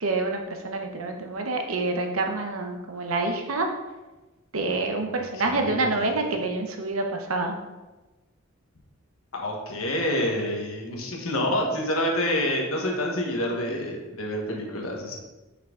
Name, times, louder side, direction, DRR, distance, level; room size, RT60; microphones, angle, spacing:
voice 1, 0.0-3.7 4.5-7.5, right 2 dB, 80° right, 4 dB, 1.0 m, -27 dB
voice 2, 5.5-6.0 9.3-15.2, left 1 dB, 80° left, 1 dB, 1.4 m, -28 dB
6.0 x 5.8 x 3.8 m, 1.1 s
head